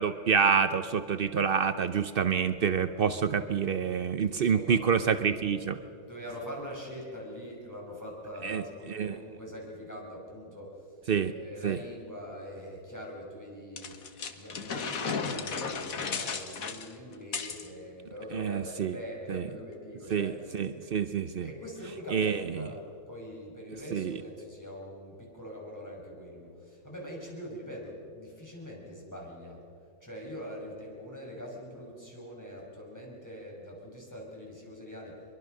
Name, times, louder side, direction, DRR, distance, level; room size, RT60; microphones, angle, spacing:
voice 1, 0.0-5.8 8.4-8.6 8.9-9.2 11.1-11.3 11.6-11.8 18.3-18.9 19.3-19.4 20.1-21.5 22.1-22.4 23.9-24.1, right 6 dB, 80° right, 10 dB, 0.5 m, -27 dB
voice 2, 4.3-4.8 6.0-10.9 11.2-14.0 14.3-20.4 21.4-22.8 23.1-29.6 30.0-35.2, equal, 10° left, -2 dB, 5.6 m, -43 dB
sound 1, 13.8-17.7, left 5 dB, 50° left, 1.7 m, -34 dB
24.0 x 22.5 x 6.6 m, 2.7 s
omnidirectional pair, 2.0 m